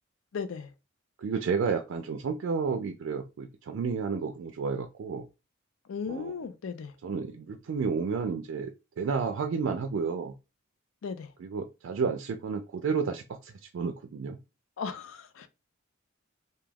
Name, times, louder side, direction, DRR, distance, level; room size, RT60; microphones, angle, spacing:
voice 1, 0.3-0.7 5.9-6.9 11.0-11.3 14.8-15.5, left 5 dB, 80° left, 0.4 m, -36 dB
voice 2, 1.2-5.2 6.1-6.3 7.0-8.7 9.0-10.3 11.4-14.4, right 5 dB, 70° right, 0.3 m, -31 dB
2.3 x 2.2 x 3.3 m
head